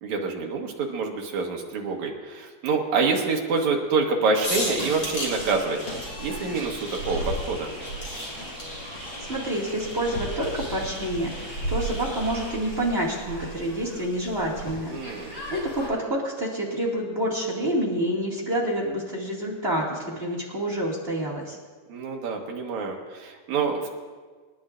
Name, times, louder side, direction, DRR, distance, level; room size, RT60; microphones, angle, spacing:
voice 1, 0.0-5.8 6.2-7.7 14.9-15.4 21.9-23.9, right 4 dB, 60° right, 0 dB, 2.3 m, -26 dB
sound 1, 4.4-15.9, equal, 35° left, 3.1 m, -35 dB
sound 2, 4.6-12.6, equal, 10° left, 2.9 m, -40 dB
voice 2, 9.2-21.6, right 1 dB, 25° right, -3 dB, 1.4 m, -28 dB
28.0 x 11.5 x 2.5 m, 1.5 s
omnidirectional pair, 4.6 m